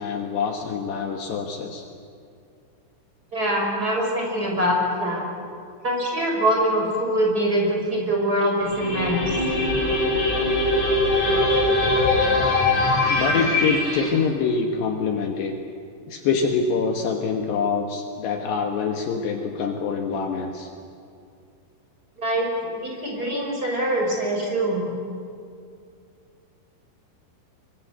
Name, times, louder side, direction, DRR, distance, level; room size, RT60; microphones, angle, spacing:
voice 1, 0.0-1.8 13.1-15.6 16.1-20.7, left 5 dB, 70° left, 3 dB, 3.1 m, -25 dB
voice 2, 3.3-5.3 5.8-9.2 22.2-24.9, right 1 dB, 20° right, -1 dB, 5.3 m, -23 dB
sound 1, 8.6-14.1, left 2 dB, 35° left, 7.1 m, -21 dB
25.0 x 24.5 x 8.1 m, 2.4 s
omnidirectional pair, 5.6 m